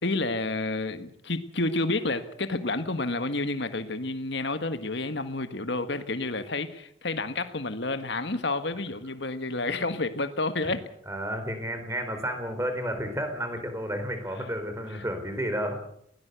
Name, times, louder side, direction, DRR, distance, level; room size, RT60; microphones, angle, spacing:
voice 1, 0.0-10.9, left 2 dB, 60° left, 10 dB, 1.6 m, -30 dB
voice 2, 11.1-15.7, equal, 15° right, 6 dB, 4.2 m, -31 dB
20.5 x 18.0 x 8.2 m, 0.68 s
head